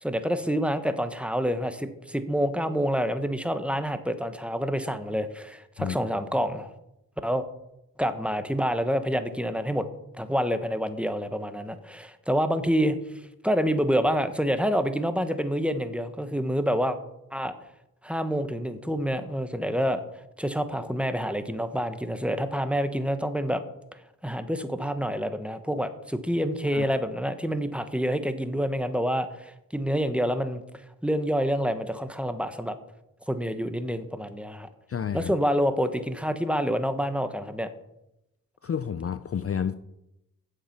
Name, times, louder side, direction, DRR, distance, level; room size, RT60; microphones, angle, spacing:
voice 1, 0.0-6.7 7.2-7.5 8.0-9.9 10.2-13.0 13.4-17.0 17.3-17.5 18.0-20.0 20.4-23.6 24.2-30.6 31.0-32.8 33.3-34.7 35.1-37.7, equal, 5° right, 10 dB, 1.1 m, -27 dB
voice 2, 34.9-35.3 38.6-39.7, left 7 dB, 40° left, 13 dB, 0.5 m, -30 dB
8.2 x 7.5 x 5.9 m, 0.87 s
cardioid pair, 40°, 36 cm